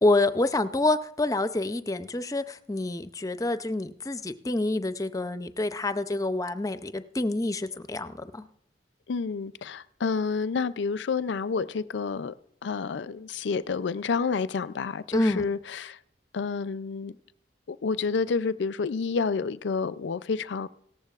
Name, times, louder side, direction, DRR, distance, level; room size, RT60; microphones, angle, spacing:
voice 1, 0.0-8.5 15.1-15.5, left 2 dB, 20° left, 0.5 m, -27 dB
voice 2, 9.1-12.3 12.6-16.0 16.3-17.2 17.7-20.7, left 5 dB, 75° left, 0.4 m, -29 dB
17.5 x 14.0 x 2.4 m
head